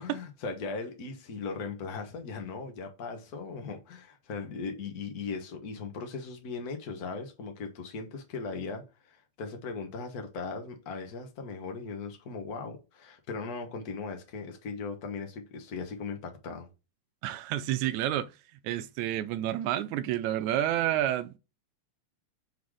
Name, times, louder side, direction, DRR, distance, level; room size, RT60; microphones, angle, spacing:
voice 1, 0.0-16.7, left 4 dB, 75° left, 0.8 m, -38 dB
voice 2, 17.2-18.3 18.6-21.4, right 12 dB, 80° right, 1.7 m, -29 dB
6.8 x 4.0 x 4.9 m
omnidirectional pair, 3.8 m